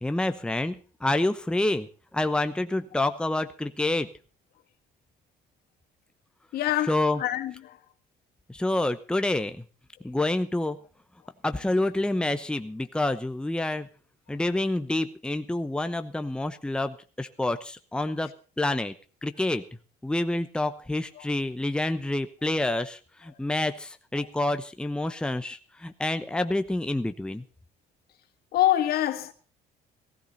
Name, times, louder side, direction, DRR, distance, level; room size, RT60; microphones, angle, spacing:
voice 1, 0.0-1.9 2.1-4.1 6.9-7.2 8.5-9.6 10.0-10.8 11.4-13.9 14.3-18.3 18.6-18.9 19.2-19.6 20.0-27.4, left 2 dB, 5° left, 0.9 m, -28 dB
voice 2, 6.5-7.8 21.1-21.3 25.0-25.1 28.5-29.3, left 13 dB, 65° left, 1.7 m, -26 dB
16.5 x 15.0 x 4.1 m
cardioid pair, 110°, 17 cm